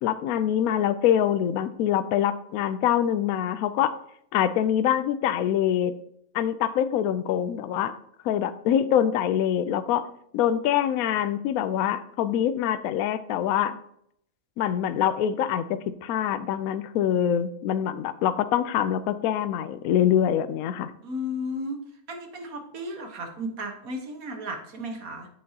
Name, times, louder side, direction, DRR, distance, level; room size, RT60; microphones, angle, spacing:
voice 1, 0.0-3.9 4.3-5.9 6.3-7.9 8.2-10.1 10.3-13.8 14.6-20.9, left 10 dB, 75° left, 12 dB, 1.0 m, -24 dB
voice 2, 21.0-21.8 22.1-25.3, left 1 dB, 70° right, 4 dB, 1.6 m, -34 dB
8.5 x 7.6 x 2.8 m, 0.70 s
omnidirectional pair, 1.5 m